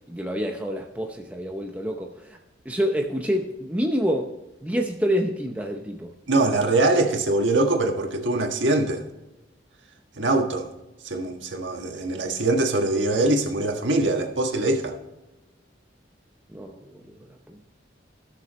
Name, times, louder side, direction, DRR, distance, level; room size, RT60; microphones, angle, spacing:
voice 1, 0.1-2.4 2.6-4.3 4.6-6.1 16.5-17.6, equal, 10° right, 0.6 m, -28 dB
voice 2, 6.3-9.0 10.2-10.7 11.0-15.0, right 2 dB, 80° right, 1.5 m, -23 dB
16.5 x 6.7 x 3.1 m
head